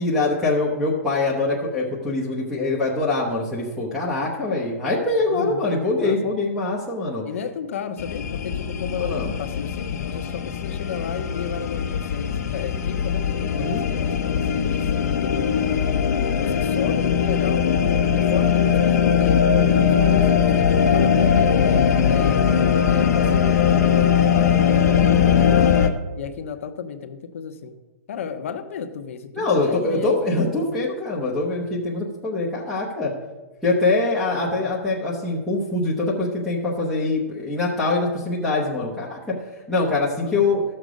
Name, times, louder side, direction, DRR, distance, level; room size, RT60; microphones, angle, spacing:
voice 1, 0.0-7.2 9.1-9.3 13.5-13.8 29.3-33.1 33.6-39.4 39.7-40.6, left 2 dB, ahead, -9 dB, 0.9 m, -23 dB
voice 2, 5.3-6.3 7.2-15.5 16.3-17.7 18.1-25.7 26.2-27.8 28.1-30.5 34.3-34.7 40.2-40.6, left 6 dB, 50° left, 8 dB, 0.9 m, -34 dB
sound 1, 8.0-25.9, left 7 dB, 80° left, 1.0 m, -20 dB
13.0 x 6.7 x 5.0 m, 1.2 s
hypercardioid pair, 175°, 9 cm